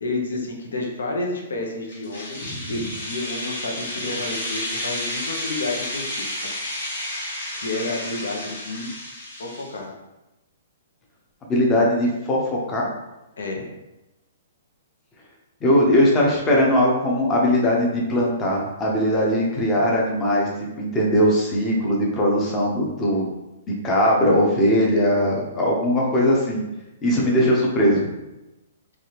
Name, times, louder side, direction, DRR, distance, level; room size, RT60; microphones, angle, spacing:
voice 1, 0.0-6.5 7.5-8.9 9.4-9.9 13.4-13.6, left 2 dB, 90° left, 0 dB, 0.7 m, -30 dB
sound 1, 1.9-9.8, left 1 dB, 60° left, 1.5 m, -31 dB
voice 2, 11.4-12.9 15.6-20.5 20.8-23.3 23.8-26.6 27.0-28.1, equal, 15° left, -3 dB, 0.6 m, -20 dB
3.3 x 2.4 x 2.9 m, 0.98 s
hypercardioid pair, 170°, 0 cm